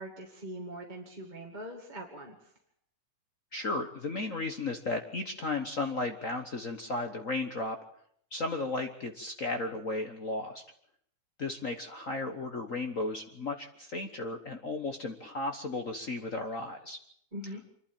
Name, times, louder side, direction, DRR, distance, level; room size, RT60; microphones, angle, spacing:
voice 1, 0.0-2.5 17.3-17.6, right 1 dB, 15° right, 0 dB, 2.0 m, -42 dB
voice 2, 3.5-7.8 8.3-10.6 11.4-17.0, left 2 dB, 55° left, 5 dB, 0.9 m, -34 dB
25.5 x 12.0 x 9.1 m, 0.67 s
omnidirectional pair, 3.4 m